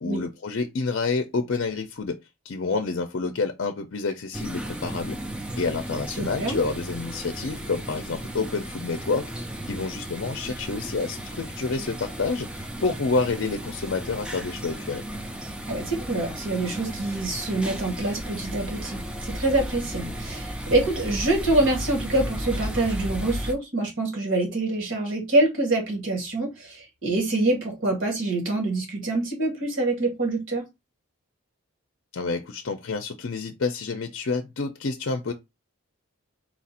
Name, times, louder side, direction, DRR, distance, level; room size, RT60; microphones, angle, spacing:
voice 1, 0.0-2.2 2.4-5.2 5.5-9.3 9.7-15.0 32.1-35.3, left 4 dB, 60° left, 0.5 m, -28 dB
sound 1, 4.3-23.5, equal, 5° right, 0.3 m, -34 dB
voice 2, 6.2-6.6 15.7-30.7, right 2 dB, 65° right, 1.9 m, -25 dB
4.3 x 2.5 x 4.2 m
head